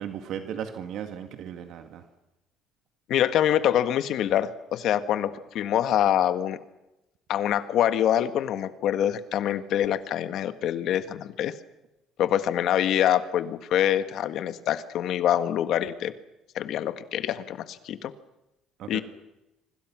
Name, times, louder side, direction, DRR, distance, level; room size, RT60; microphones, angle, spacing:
voice 1, 0.0-2.0 18.8-19.0, right 9 dB, 60° right, 7 dB, 2.0 m, -36 dB
voice 2, 3.1-6.6 7.3-11.6 12.2-16.1 16.5-18.1 18.9-19.0, left 11 dB, 60° left, 11 dB, 1.6 m, -25 dB
26.5 x 25.0 x 6.1 m, 0.93 s
cardioid pair, 125°, 0 cm